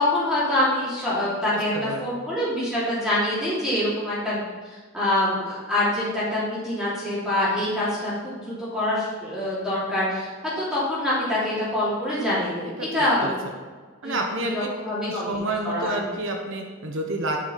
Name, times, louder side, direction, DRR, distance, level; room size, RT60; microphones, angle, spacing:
voice 1, 0.0-4.4 4.9-10.3 10.6-13.4 14.0-14.2 14.4-15.4 15.6-16.0, left 1 dB, 5° right, -10 dB, 3.1 m, -25 dB
voice 2, 1.5-2.1 12.8-13.3 14.0-14.7 15.1-17.4, right 2 dB, 60° right, 2 dB, 1.1 m, -29 dB
8.9 x 6.7 x 5.9 m, 1.5 s
head